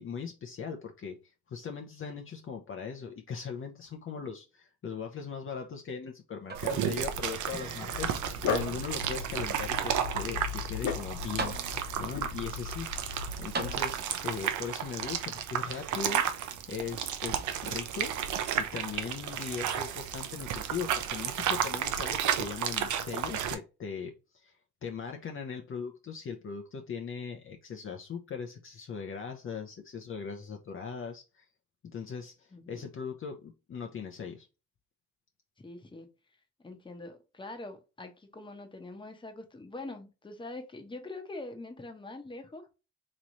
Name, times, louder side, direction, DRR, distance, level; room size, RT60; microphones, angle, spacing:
voice 1, 0.0-16.2 16.7-18.1 18.5-24.6 24.8-31.4 31.8-34.5, left 6 dB, 45° left, 0.7 m, -39 dB
sound 1, 6.4-7.1 7.5-8.5 9.2-9.3 10.9-11.0 11.4-12.1 13.5-14.4 15.5-15.6, right 4 dB, 35° right, 0.7 m, -39 dB
sound 2, 6.5-23.5, right 9 dB, 75° right, 0.7 m, -33 dB
Dog, 7.9-13.8, left 6 dB, 85° left, 1.0 m, -37 dB
voice 2, 32.5-32.9 35.6-36.1 36.6-42.7, left 2 dB, 15° left, 1.0 m, -44 dB
3.1 x 3.0 x 3.8 m
cardioid pair, 90°, 30 cm